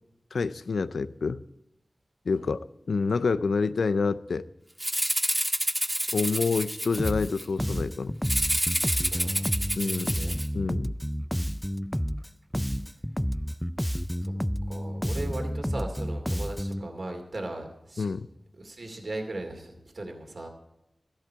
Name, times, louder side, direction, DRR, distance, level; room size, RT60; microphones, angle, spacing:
voice 1, 0.3-1.4 2.3-2.6 2.9-4.5 6.1-8.2 9.8-10.2 10.5-10.9 18.0-18.3, left 4 dB, 90° left, 0.4 m, -27 dB
Rattle (instrument), 4.8-7.5 8.2-10.5, right 1 dB, 15° right, 1.6 m, -28 dB
Bass guitar, 7.0-7.3 7.6-12.3 12.5-16.9, equal, 5° left, 0.3 m, -30 dB
voice 2, 9.1-10.4 14.7-18.1 18.5-20.5, right 2 dB, 65° right, 2.5 m, -38 dB
13.5 x 12.0 x 4.6 m
cardioid pair, 45°, 0 cm